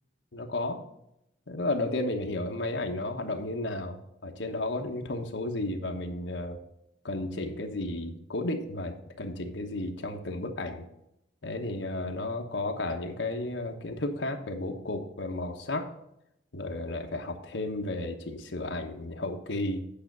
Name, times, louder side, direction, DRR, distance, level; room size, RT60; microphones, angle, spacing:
voice 1, 0.3-0.8 1.5-6.6 7.0-10.8 11.4-15.9 16.5-19.8, left 2 dB, 90° left, 3 dB, 1.1 m, -33 dB
8.8 x 5.8 x 5.9 m, 0.82 s
head